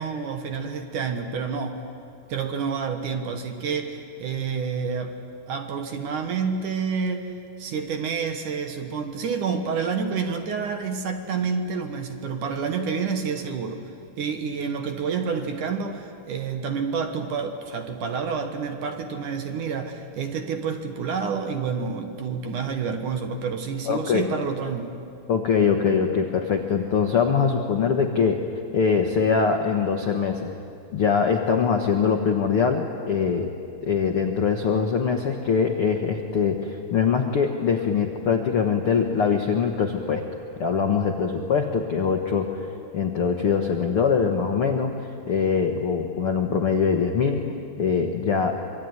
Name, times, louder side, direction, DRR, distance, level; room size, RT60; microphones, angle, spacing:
voice 1, 0.0-1.8 2.3-5.2 5.5-7.3 7.6-13.9 14.2-25.0, right 5 dB, 60° right, 6 dB, 2.5 m, -29 dB
voice 2, 23.9-24.2 25.3-28.4 28.7-30.5 30.9-33.5 33.8-40.2 40.6-42.6 42.9-47.4 47.8-48.6, left 6 dB, 75° left, 4 dB, 1.3 m, -23 dB
25.5 x 24.0 x 9.6 m, 2.5 s
omnidirectional pair, 4.7 m